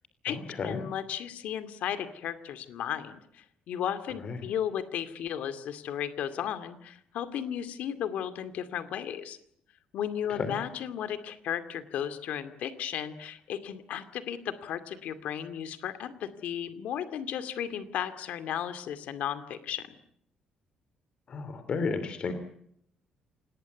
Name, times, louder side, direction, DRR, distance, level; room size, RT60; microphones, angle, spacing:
voice 1, 0.6-9.4 9.9-19.9, left 9 dB, 65° left, 10 dB, 2.4 m, -35 dB
voice 2, 21.3-22.3, left 4 dB, 40° left, 10 dB, 3.0 m, -32 dB
27.5 x 19.0 x 9.5 m, 0.71 s
cardioid pair, 160°, 3 cm